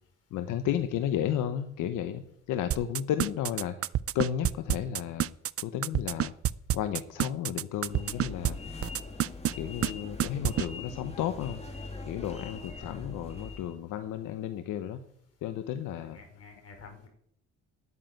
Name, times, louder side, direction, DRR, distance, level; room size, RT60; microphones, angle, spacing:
voice 1, 0.3-2.2 2.5-3.7 4.1-5.3 5.6-6.3 6.7-8.6 9.6-11.6 12.1-15.0 15.4-16.2, left 10 dB, 85° left, 10 dB, 1.0 m, -32 dB
sound 1, 2.7-8.5 8.8-9.5 9.8-9.9 10.2-10.7, right 12 dB, 50° right, 0.5 m, -27 dB
sound 2, 7.8-13.8, left 3 dB, 20° left, 3.1 m, -42 dB
voice 2, 15.9-17.1, left 4 dB, 55° left, 4 dB, 5.0 m, -50 dB
10.0 x 9.5 x 9.2 m, 0.70 s
cardioid pair, 90°, 30 cm